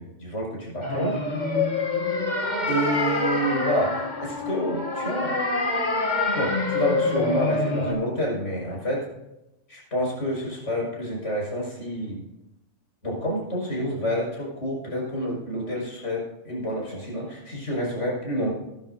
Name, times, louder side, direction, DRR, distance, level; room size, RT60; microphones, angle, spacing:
voice 1, 0.0-1.5 2.7-5.4 6.3-9.1 9.7-12.2 13.0-18.5, equal, 85° left, -3 dB, 6.0 m, -28 dB
sound 1, 0.8-7.9, left 3 dB, 40° left, 1.8 m, -26 dB
17.5 x 12.5 x 2.7 m, 0.91 s
omnidirectional pair, 1.2 m